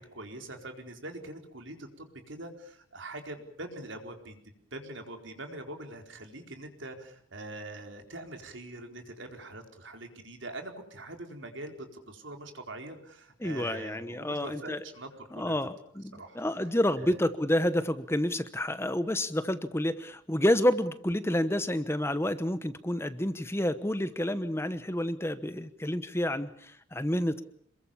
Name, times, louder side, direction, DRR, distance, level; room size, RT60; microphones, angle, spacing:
voice 1, 0.0-4.4 4.7-15.5 16.1-16.4 17.0-17.2, right 2 dB, 65° right, 5 dB, 4.3 m, -43 dB
voice 2, 13.4-14.8 15.3-27.4, left 1 dB, 10° left, 12 dB, 1.0 m, -29 dB
27.5 x 22.0 x 7.2 m, 0.63 s
head